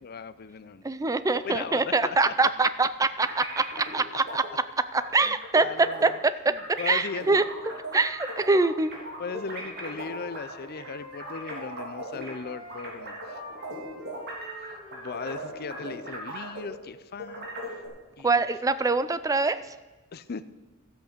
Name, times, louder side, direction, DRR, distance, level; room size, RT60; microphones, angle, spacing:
voice 1, 0.0-0.9 1.4-2.3 2.6-2.7 5.2-6.2 6.5-7.4 9.2-13.4 14.6-17.5 18.2-18.4 20.1-20.4, left 5 dB, 45° left, 14 dB, 0.5 m, -38 dB
voice 2, 0.8-3.6 3.9-4.4 4.9-7.4 7.9-8.9 18.2-19.6, right 3 dB, 15° right, 13 dB, 0.4 m, -24 dB
sound 1, 3.2-4.0 4.3-4.5 5.0-6.3 6.6-12.3 12.7-16.9 17.2-17.9, right 1 dB, 55° right, 3.5 m, -38 dB
Wind instrument woodwind instrument, 9.1-15.7, equal, 75° right, 5.3 m, -47 dB
13.0 x 8.1 x 6.7 m, 1.2 s
head